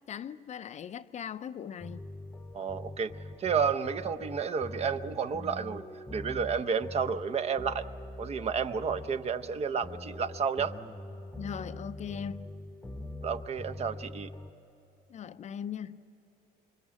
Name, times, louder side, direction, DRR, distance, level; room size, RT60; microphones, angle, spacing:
voice 1, 0.1-2.1 11.4-12.5 15.1-16.0, left 8 dB, 45° left, 0.6 m, -39 dB
sound 1, 1.8-14.5, left 1 dB, 10° left, 0.9 m, -43 dB
voice 2, 2.5-3.1 3.4-5.8 6.1-7.8 8.2-10.7 13.2-14.3, right 6 dB, 40° right, 0.7 m, -31 dB
26.0 x 23.0 x 7.6 m
cardioid pair, 110°, 17 cm